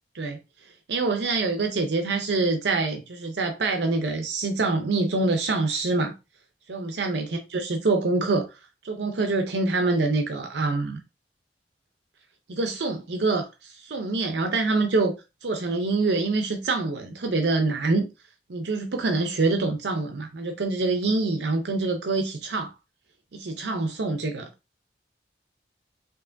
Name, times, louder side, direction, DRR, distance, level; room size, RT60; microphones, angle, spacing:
voice 1, 0.9-6.1 6.7-7.3 7.5-8.6 8.8-11.0 12.5-15.1 15.4-18.0 18.5-22.7 23.3-24.5, right 3 dB, 70° right, 0.6 m, -25 dB
4.6 x 2.9 x 2.6 m
head